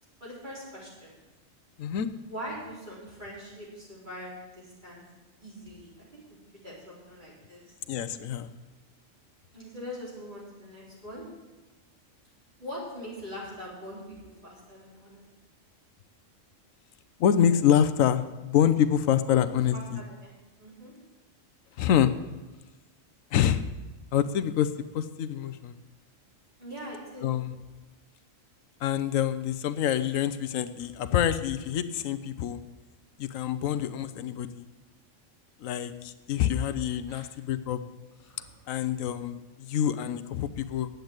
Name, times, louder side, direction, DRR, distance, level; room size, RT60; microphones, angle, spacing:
voice 1, 0.2-1.1 2.3-5.0 5.4-6.4 6.6-7.8 9.5-11.3 12.6-15.2 19.3-19.4 19.7-20.9 26.6-27.3 37.1-37.2, equal, 35° right, -6 dB, 4.3 m, -42 dB
voice 2, 1.8-2.1 7.9-8.5 17.2-20.0 21.8-22.1 23.3-23.6 24.1-25.8 27.2-27.5 28.8-32.6 33.2-34.6 35.6-37.8 38.7-40.9, left 9 dB, 85° left, 11 dB, 1.0 m, -26 dB
9.3 x 8.0 x 8.8 m, 1.1 s
omnidirectional pair, 1.4 m